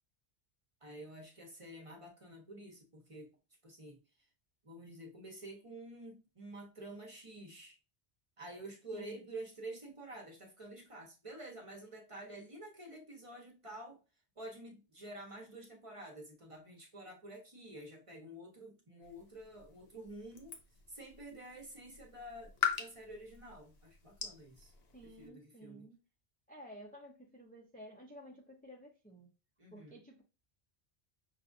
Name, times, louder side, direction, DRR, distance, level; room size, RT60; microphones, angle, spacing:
voice 1, 0.8-3.4 3.6-4.0 4.6-7.8 8.4-14.0 14.4-20.6 20.9-24.7 25.0-25.9 29.6-30.0, right 1 dB, 35° right, 0.8 m, -49 dB
voice 2, 8.9-9.2 24.9-26.0 26.5-29.3 29.7-30.2, equal, 10° left, 0.4 m, -53 dB
sound 1, 19.0-25.3, left 8 dB, 70° left, 1.0 m, -42 dB
5.6 x 2.4 x 2.5 m
omnidirectional pair, 1.1 m